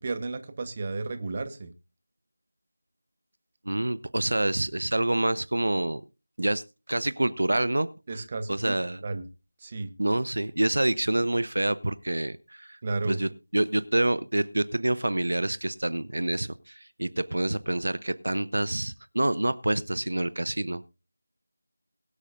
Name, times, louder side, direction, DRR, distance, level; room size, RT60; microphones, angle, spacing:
voice 1, 0.0-1.7 8.1-8.8 9.0-9.2 9.6-9.9 12.8-13.2, right 3 dB, 30° right, 10 dB, 1.0 m, -32 dB
voice 2, 3.7-6.0 6.4-6.6 6.9-8.2 8.5-9.0 10.0-12.8 13.0-20.9, right 1 dB, 75° right, 16 dB, 0.6 m, -27 dB
22.5 x 8.3 x 2.5 m, 0.29 s
figure-of-eight pair, 170°, 0 cm